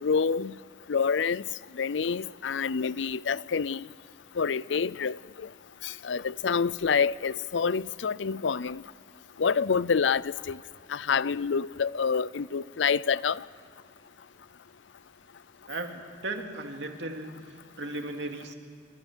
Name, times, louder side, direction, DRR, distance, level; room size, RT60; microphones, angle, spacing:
voice 1, 0.0-0.5 0.9-1.4 1.8-3.8 4.4-5.2 5.8-8.8 9.4-10.6 10.9-13.4, left 6 dB, 85° left, 0.5 m, -27 dB
voice 2, 15.7-18.6, right 2 dB, 75° right, 2.5 m, -36 dB
29.5 x 25.5 x 6.3 m
head